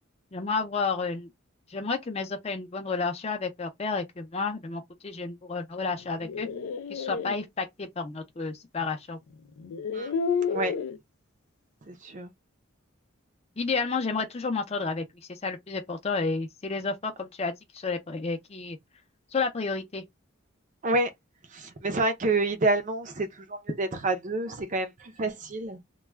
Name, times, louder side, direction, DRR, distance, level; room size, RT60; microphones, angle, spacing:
voice 1, 0.3-1.3 1.7-6.5 6.9-9.2 13.6-18.8 19.3-20.0, left 4 dB, 30° left, 0.5 m, -31 dB
sound 1, 6.0-7.3 8.8-8.9 9.6-11.0, left 5 dB, 80° left, 0.4 m, -30 dB
voice 2, 11.9-12.3 20.8-21.1 21.5-25.8, right 2 dB, 35° right, 0.5 m, -28 dB
2.3 x 2.2 x 3.2 m
head